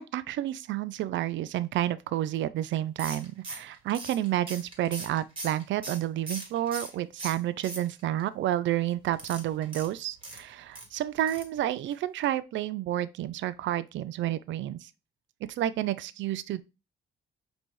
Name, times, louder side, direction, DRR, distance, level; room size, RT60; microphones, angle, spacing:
voice 1, 0.0-14.9 15.5-16.6, right 12 dB, 70° right, 0.5 m, -30 dB
sound 1, 3.0-6.9 7.2-8.2 9.1-10.9 11.3-11.6 11.9-12.0 12.2-12.3, right 2 dB, 25° right, 1.7 m, -40 dB
5.2 x 3.0 x 3.2 m
cardioid pair, 90°, 20 cm